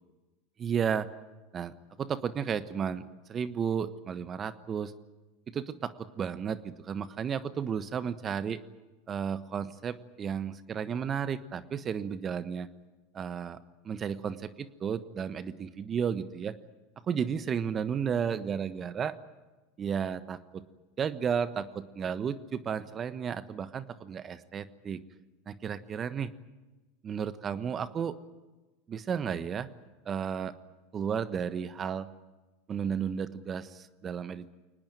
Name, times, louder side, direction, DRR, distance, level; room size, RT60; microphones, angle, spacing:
voice 1, 0.6-1.1 1.5-4.9 5.5-8.6 9.1-12.7 13.1-13.6 13.8-16.5 17.0-19.1 19.8-20.6 21.0-25.0 25.5-26.3 27.0-28.2 28.9-29.7 30.0-30.5 30.9-32.1 32.7-34.4, right 7 dB, 30° right, 13 dB, 1.2 m, -33 dB
23.5 x 19.5 x 9.2 m, 1.2 s
hypercardioid pair, 95°, 0 cm